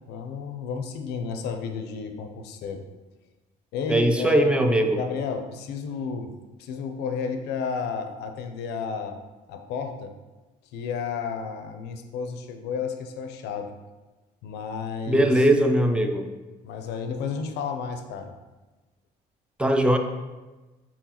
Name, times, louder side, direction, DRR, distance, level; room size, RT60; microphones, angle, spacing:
voice 1, 0.1-2.8 3.7-6.3 6.6-9.2 9.5-10.1 10.7-13.7 14.4-15.4 16.6-18.4, left 5 dB, 85° left, 7 dB, 0.5 m, -32 dB
voice 2, 3.9-5.0 15.1-16.3 19.6-20.0, right 1 dB, 5° right, 5 dB, 0.4 m, -20 dB
4.3 x 3.9 x 2.9 m, 1.2 s
cardioid pair, 110°, 17 cm